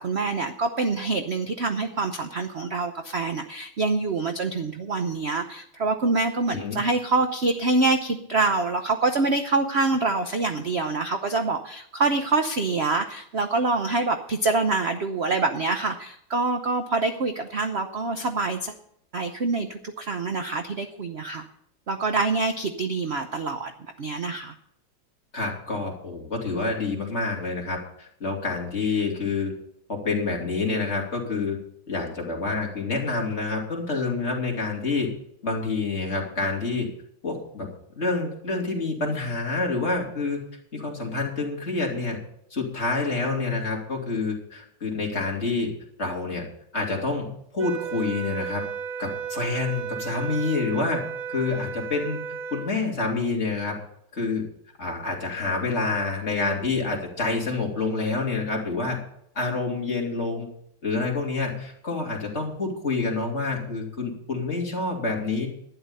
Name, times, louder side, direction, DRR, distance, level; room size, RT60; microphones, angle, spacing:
voice 1, 0.0-18.7 19.1-21.5 21.9-23.7 24.0-24.5, right 3 dB, 55° right, 6 dB, 0.7 m, -25 dB
voice 2, 6.5-6.8 25.3-29.5 29.9-31.6 31.9-35.1 35.4-36.9 37.2-37.7 38.0-40.4 40.7-42.2 42.5-45.7 46.0-46.4 46.7-48.6 49.0-51.0 51.3-52.2 52.5-53.7 54.1-54.4 54.8-59.0 59.3-60.5 60.8-65.5, left 3 dB, 35° left, -1 dB, 3.0 m, -27 dB
sound 1, 47.6-52.8, right 7 dB, 75° right, 1.9 m, -34 dB
12.0 x 10.5 x 5.4 m, 0.70 s
omnidirectional pair, 2.2 m